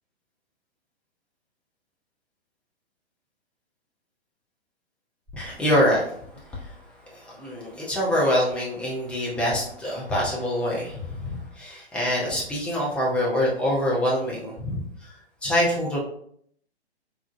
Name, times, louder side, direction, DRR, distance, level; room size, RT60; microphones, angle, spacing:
voice 1, 5.3-6.0 7.3-14.8 15.4-16.0, equal, 5° left, -5 dB, 0.7 m, -25 dB
3.5 x 3.2 x 2.5 m, 0.64 s
figure-of-eight pair, 120°, 33 cm